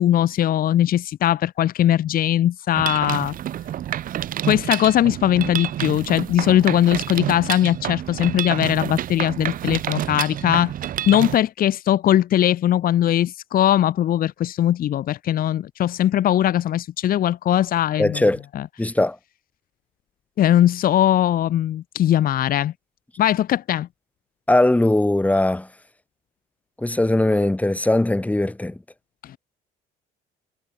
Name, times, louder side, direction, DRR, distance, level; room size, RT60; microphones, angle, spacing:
voice 1, 0.0-3.3 4.5-10.7 11.1-18.2 18.5-18.6 20.4-22.7 23.2-23.9, left 12 dB, 60° left, 1.6 m, -20 dB
Mechanisms, 2.7-11.4, right 11 dB, 55° right, 1.2 m, -28 dB
voice 2, 18.0-18.4 18.8-19.2 24.5-25.7 26.8-28.8, left 1 dB, 10° left, 4.2 m, -20 dB
cardioid pair, 110°, 17 cm